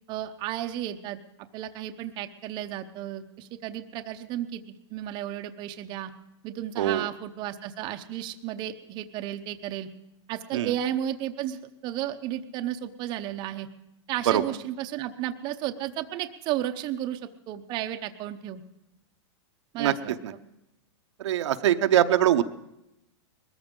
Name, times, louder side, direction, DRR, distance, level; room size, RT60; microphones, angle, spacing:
voice 1, 0.1-1.2 1.5-4.6 4.9-6.1 6.4-9.9 10.3-13.7 14.1-18.6 19.7-20.2, right 12 dB, 30° right, 7 dB, 0.7 m, -33 dB
voice 2, 21.2-22.4, right 11 dB, 75° right, 8 dB, 0.8 m, -22 dB
21.0 x 14.0 x 3.7 m, 0.88 s
hypercardioid pair, 145°, 15 cm